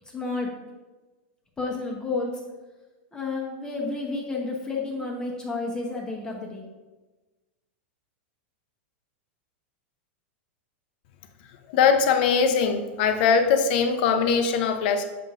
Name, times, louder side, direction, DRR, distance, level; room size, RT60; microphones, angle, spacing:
voice 1, 0.1-0.5 1.6-2.4 3.1-6.6, left 3 dB, 10° left, -1 dB, 0.9 m, -30 dB
voice 2, 11.7-15.0, left 6 dB, 55° left, 8 dB, 0.7 m, -21 dB
6.7 x 5.7 x 2.5 m, 1.2 s
supercardioid pair, 150°, 6 cm